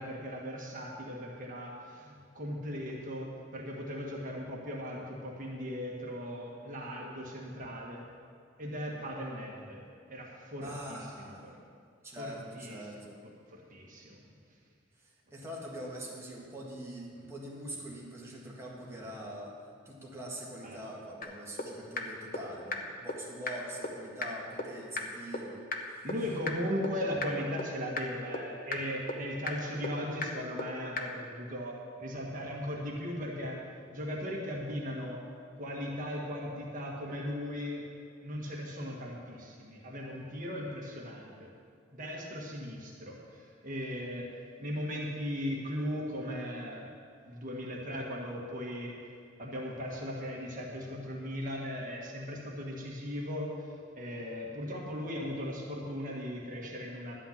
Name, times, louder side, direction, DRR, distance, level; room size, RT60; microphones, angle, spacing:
voice 1, 0.0-8.0 8.6-9.8 10.1-11.6 12.2-12.8 13.5-14.2 20.6-20.8 26.0-33.6 33.9-35.2 35.6-37.8 38.2-41.5 41.9-44.3 44.6-46.9 47.2-48.9 49.4-57.2, equal, 40° right, -2 dB, 1.5 m, -38 dB
voice 2, 10.6-11.5 12.0-13.2 15.0-19.6 19.9-25.6, right 1 dB, 15° right, -4 dB, 2.0 m, -43 dB
sound 1, 21.2-21.3 21.6-21.7 22.0-22.1 22.3-22.4 22.7-22.8 23.1-23.2 23.5-23.6 23.8-23.9 24.2-24.3 24.6-24.7 25.0-25.1 25.3-25.4 25.7-25.8 26.1-26.2 26.5-26.6 26.8-26.9 27.2-27.3 27.6-27.7 28.0-28.1 28.3-28.4 28.7-28.8 29.1-29.2 29.5-29.6 29.8-29.9 30.2-30.3 30.6-30.7 31.0-31.1, left 4 dB, 45° left, 1.0 m, -33 dB
11.5 x 5.7 x 8.6 m, 2.2 s
head